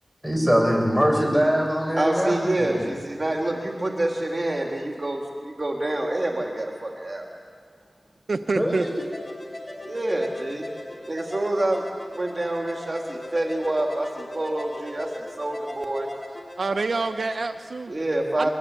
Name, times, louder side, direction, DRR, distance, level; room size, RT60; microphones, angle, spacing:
voice 1, 0.2-2.9 8.5-8.9, equal, 5° left, 1 dB, 7.8 m, -22 dB
voice 2, 2.0-7.3 9.8-10.7 11.1-11.8 12.1-16.1 17.9-18.5, right 1 dB, 40° right, 0 dB, 3.4 m, -27 dB
voice 3, 8.3-8.9 16.6-17.9 18.4-18.5, right 3 dB, 75° right, 9 dB, 0.8 m, -26 dB
sound 1, 8.7-17.4, left 1 dB, 35° left, 5.6 m, -39 dB
22.5 x 22.0 x 8.5 m, 2.2 s
cardioid pair, 45°, 0 cm